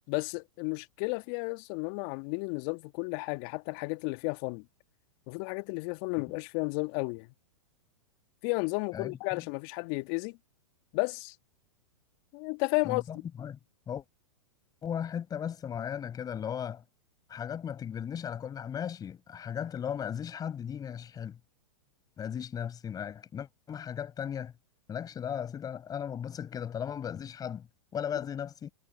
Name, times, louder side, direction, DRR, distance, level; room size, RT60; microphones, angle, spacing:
voice 1, 0.1-4.6 5.3-7.3 8.4-10.4 10.9-11.3 12.3-13.2, left 33 dB, 45° left, 1.7 m, -33 dB
voice 2, 8.9-9.4 12.8-13.6 13.9-14.0 14.8-16.8 17.3-21.4 22.2-24.5 24.9-28.7, left 8 dB, 20° left, 5.2 m, -36 dB
figure-of-eight pair, 105°, 17 cm